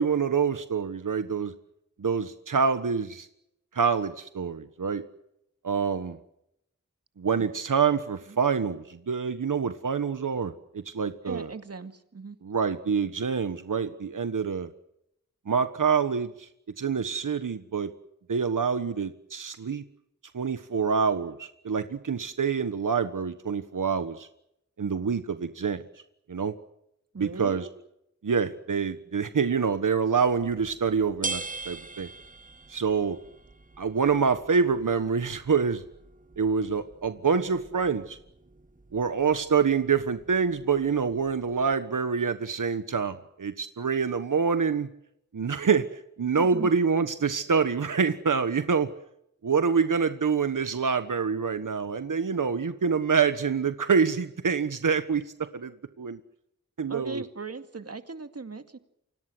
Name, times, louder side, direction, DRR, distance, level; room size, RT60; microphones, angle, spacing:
voice 1, 0.0-1.5 2.0-3.3 3.7-5.0 5.6-6.2 7.2-10.5 10.8-11.5 12.4-14.7 15.5-16.5 16.8-17.9 18.3-19.8 20.3-24.3 24.8-25.8 26.3-26.5 27.2-27.7 28.2-32.1 32.7-33.2 33.8-35.8 36.4-38.2 38.9-44.9 45.3-48.9 49.4-55.2 55.5-55.7 56.0-56.2 56.8-57.2, right 6 dB, 80° right, 10 dB, 1.4 m, -26 dB
voice 2, 11.2-12.4 27.1-27.7 46.4-46.7 56.9-58.8, right 4 dB, 50° right, 8 dB, 2.3 m, -38 dB
sound 1, 30.3-41.7, right 3 dB, 25° right, 1.6 m, -43 dB
29.0 x 25.5 x 6.2 m, 0.79 s
wide cardioid pair, 95°, 31 cm